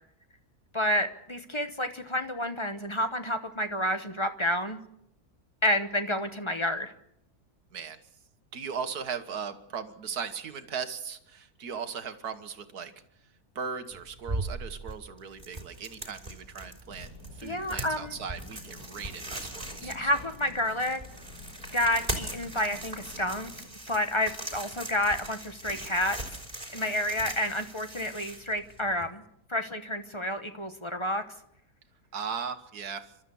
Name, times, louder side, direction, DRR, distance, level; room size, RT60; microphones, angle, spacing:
voice 1, 0.7-4.8 5.6-6.9 17.4-18.1 19.8-21.0 21.7-23.5 23.9-26.2 26.7-29.2 29.5-31.2, left 1 dB, 20° left, 8 dB, 1.0 m, -29 dB
voice 2, 8.5-12.9 13.6-20.3 32.1-33.1, right 6 dB, 75° right, 9 dB, 1.9 m, -38 dB
sound 1, 13.9-29.1, right 1 dB, 20° right, 3.5 m, -40 dB
sound 2, 16.8-23.7, left 3 dB, 80° left, 3.5 m, -50 dB
30.0 x 13.0 x 7.1 m, 0.79 s
omnidirectional pair, 1.6 m